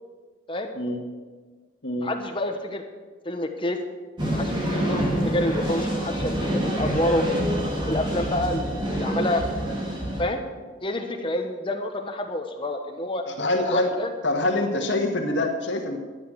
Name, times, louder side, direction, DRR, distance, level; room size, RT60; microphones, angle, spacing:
voice 1, 2.0-2.8 3.2-3.8 4.3-7.2 7.8-9.4 10.2-10.4 10.8-13.2 13.7-14.1, left 1 dB, 25° left, 5 dB, 1.1 m, -28 dB
sound 1, 4.2-10.2, equal, 25° right, 2.8 m, -26 dB
voice 2, 13.3-13.9 14.2-16.0, left 2 dB, 65° left, 2 dB, 1.9 m, -25 dB
13.0 x 10.5 x 6.4 m, 1.4 s
head